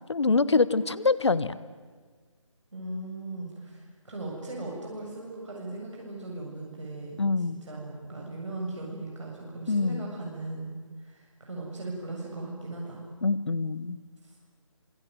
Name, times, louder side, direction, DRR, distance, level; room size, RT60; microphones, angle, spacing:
voice 1, 0.1-1.6 7.2-7.6 9.7-10.1 13.2-14.0, left 4 dB, 60° left, 17 dB, 1.3 m, -25 dB
voice 2, 2.7-13.0, right 2 dB, 65° right, -2 dB, 7.4 m, -38 dB
26.5 x 21.5 x 9.5 m, 1.6 s
figure-of-eight pair, 155°, 17 cm